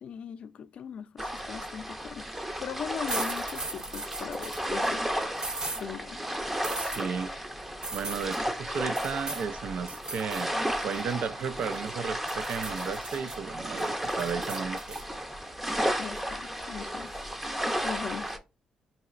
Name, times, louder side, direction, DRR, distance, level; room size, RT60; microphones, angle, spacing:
voice 1, 0.0-5.2 5.8-6.2 16.0-17.1 17.8-18.4, left 7 dB, 60° left, 0.4 m, -40 dB
sound 1, 1.2-18.4, equal, 10° right, 0.6 m, -33 dB
sound 2, 3.1-4.7 5.4-5.8 6.6-7.0 7.8-8.4 9.0-9.5 9.9-10.4 10.8-11.9 12.3-13.4 13.8-15.0, right 2 dB, 40° right, 1.0 m, -38 dB
voice 2, 6.8-7.3 7.9-10.5 10.8-15.0, right 6 dB, 65° right, 0.3 m, -34 dB
4.0 x 2.8 x 2.4 m
cardioid pair, 110°, 2 cm